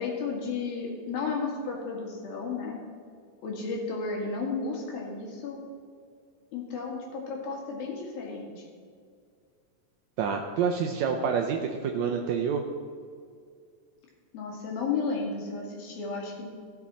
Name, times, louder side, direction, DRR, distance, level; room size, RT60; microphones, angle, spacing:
voice 1, 0.0-2.8 3.4-5.6 6.5-8.7 14.3-16.5, left 4 dB, 85° left, -1 dB, 3.8 m, -33 dB
voice 2, 10.2-12.6, right 6 dB, 85° right, 3 dB, 1.6 m, -27 dB
16.0 x 7.2 x 4.2 m, 2.2 s
omnidirectional pair, 4.1 m